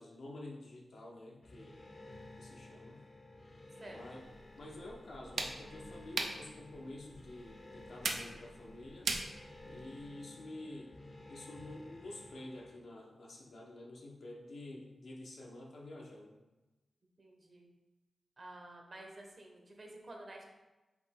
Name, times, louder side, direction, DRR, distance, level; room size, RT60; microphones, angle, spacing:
voice 1, 0.0-1.8 2.4-3.0 3.9-4.3 4.6-9.1 9.7-10.9 11.3-16.3, left 1 dB, 75° left, -2 dB, 0.9 m, -49 dB
sound 1, 1.4-12.8, left 2 dB, 35° left, 0.7 m, -54 dB
sound 2, 4.2-10.1, right 3 dB, 80° right, 0.5 m, -42 dB
voice 2, 17.2-17.7 18.4-20.4, right 1 dB, 50° right, 1 dB, 0.9 m, -51 dB
5.1 x 2.8 x 3.6 m, 1.1 s
cardioid pair, 55°, 0 cm